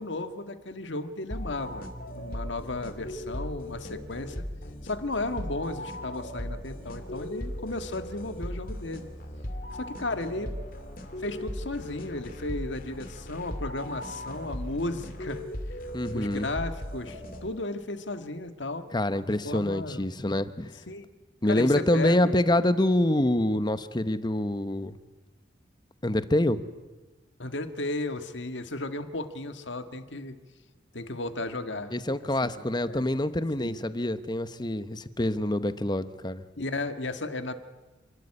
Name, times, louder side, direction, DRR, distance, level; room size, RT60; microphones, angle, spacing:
voice 1, 0.0-4.5 4.8-9.1 9.7-10.5 11.2-15.4 16.1-18.9 19.2-20.1 20.9-21.1 21.4-22.4 27.4-30.4 30.9-31.9 32.4-33.0 33.6-33.8 36.6-37.5, left 2 dB, 70° left, 9 dB, 1.7 m, -34 dB
sound 1, 1.3-17.8, equal, 50° left, 2.5 m, -38 dB
voice 2, 15.9-16.5 18.9-20.7 21.4-25.0 26.0-26.6 31.9-36.4, left 1 dB, 25° left, 13 dB, 0.9 m, -26 dB
29.0 x 12.5 x 9.9 m, 1.2 s
head